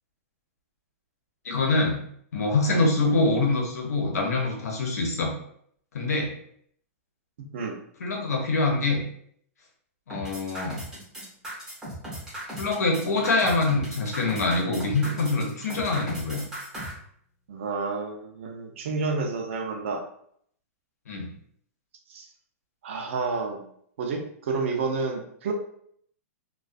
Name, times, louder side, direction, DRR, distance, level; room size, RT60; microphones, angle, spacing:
voice 1, 1.4-2.0 2.3-5.3 5.9-6.3 8.0-9.0 10.1-10.8 12.6-16.5 21.1-21.2, left 3 dB, 90° left, 0 dB, 0.8 m, -25 dB
sound 1, 10.1-16.9, right 1 dB, 5° right, 0.6 m, -37 dB
voice 2, 17.5-20.0 22.1-22.3 22.8-23.6 24.0-25.5, right 4 dB, 55° right, 3 dB, 0.5 m, -30 dB
2.4 x 2.3 x 2.5 m, 0.66 s
hypercardioid pair, 170°, 8 cm